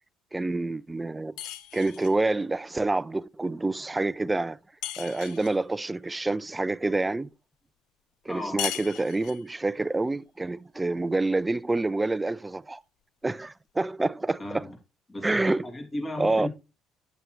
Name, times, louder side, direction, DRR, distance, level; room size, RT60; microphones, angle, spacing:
voice 1, 0.3-1.3 1.7-4.6 5.0-7.3 8.3-12.8 13.2-14.7 15.2-15.7 16.2-16.5, right 2 dB, 15° right, 0.4 m, -27 dB
sound 1, 1.4-2.2 4.8-5.6 8.6-9.5, left 13 dB, 70° left, 0.6 m, -36 dB
voice 2, 8.3-8.6 14.4-14.8 15.1-16.5, left 1 dB, 30° left, 2.8 m, -35 dB
8.9 x 7.9 x 3.2 m
hypercardioid pair, 60°, 0 cm